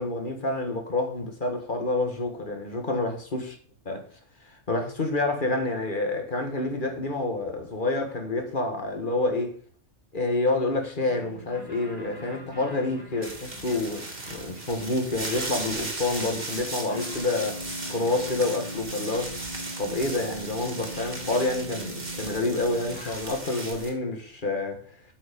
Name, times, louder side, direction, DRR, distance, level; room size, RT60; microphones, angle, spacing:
voice 1, 0.0-3.6 3.9-4.1 4.4-9.6 10.1-17.6 17.9-19.4 19.8-24.8, left 2 dB, 40° left, 1.8 m, -28 dB
sound 1, 11.0-23.7, right 1 dB, 85° left, 4.7 m, -42 dB
sound 2, 13.2-23.9, right 2 dB, 35° right, 2.1 m, -37 dB
8.7 x 7.3 x 5.3 m
omnidirectional pair, 1.3 m